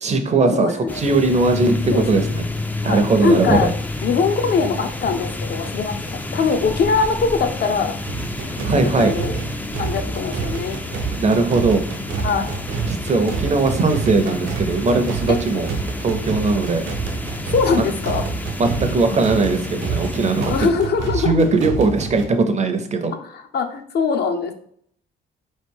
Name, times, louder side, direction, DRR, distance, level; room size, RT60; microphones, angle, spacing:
voice 1, 0.0-2.5 2.8-3.7 8.7-9.1 11.2-11.8 12.9-15.7 16.0-16.8 17.8-17.9 18.6-20.7 21.2-23.1, right 3 dB, 35° right, 7 dB, 0.6 m, -19 dB
voice 2, 0.5-1.0 1.9-2.0 2.8-3.7 4.0-6.0 6.3-7.9 8.7-9.4 9.8-10.8 12.2-12.5 17.5-18.2 20.5-21.3 23.2-24.5, left 5 dB, 55° left, 7 dB, 0.6 m, -21 dB
sound 1, 0.9-20.7, left 2 dB, 10° left, 0.3 m, -31 dB
sound 2, 1.5-7.7, left 3 dB, 70° left, 1.0 m, -30 dB
sound 3, 8.1-22.3, right 5 dB, 75° right, 0.8 m, -28 dB
3.9 x 3.1 x 3.5 m, 0.64 s
cardioid pair, 90°, 20 cm